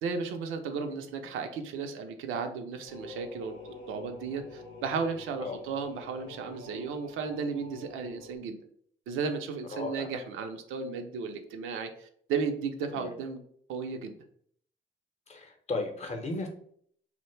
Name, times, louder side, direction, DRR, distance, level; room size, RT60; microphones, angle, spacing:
voice 1, 0.0-8.6 9.1-13.4 13.7-14.2, right 5 dB, 90° right, 6 dB, 0.4 m, -34 dB
sound 1, 2.9-8.4, left 2 dB, 80° left, 0.7 m, -47 dB
voice 2, 9.7-10.1 12.9-13.1 15.3-16.5, left 2 dB, 35° left, 3 dB, 0.7 m, -35 dB
2.6 x 2.0 x 3.0 m, 0.62 s
cardioid pair, 90°, 20 cm